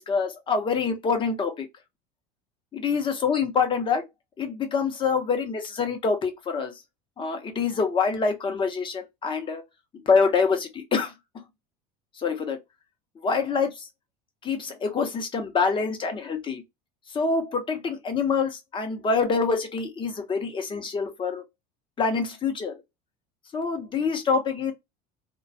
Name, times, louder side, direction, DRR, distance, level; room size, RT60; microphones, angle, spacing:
voice 1, 0.0-1.7 2.7-4.0 4.4-6.7 7.2-9.6 10.0-11.4 12.2-12.6 13.2-13.9 14.4-16.6 17.1-21.4 22.0-22.8 23.5-24.7, left 5 dB, 25° left, 0.7 m, -26 dB
2.2 x 2.2 x 2.6 m
supercardioid pair, 115°, 20 cm